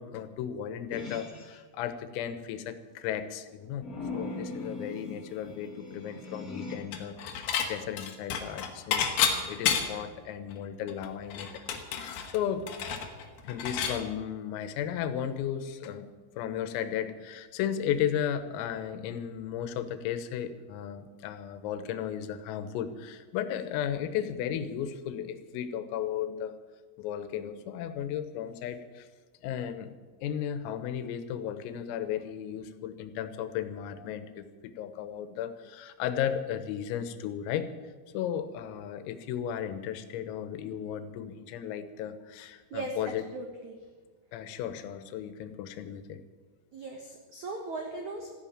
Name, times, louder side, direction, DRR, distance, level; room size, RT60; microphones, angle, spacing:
voice 1, 0.0-3.9 4.1-12.7 13.4-16.1 16.4-26.6 27.0-29.1 29.4-29.9 30.2-37.7 38.1-43.2 44.3-46.2, left 9 dB, 85° left, 11 dB, 3.7 m, -35 dB
sound 1, 0.9-1.6 3.8-6.8, left 3 dB, 20° left, 2.7 m, -40 dB
Dishes pots and pans / Chink clink, 6.9-7.7 8.0-10.1 10.5-10.6 10.9-14.0, left 7 dB, 65° left, 2.7 m, -30 dB
voice 2, 43.3-43.7 46.7-48.4, right 3 dB, 90° right, 2 dB, 1.6 m, -38 dB
14.5 x 11.0 x 8.7 m, 1.4 s
omnidirectional pair, 6.0 m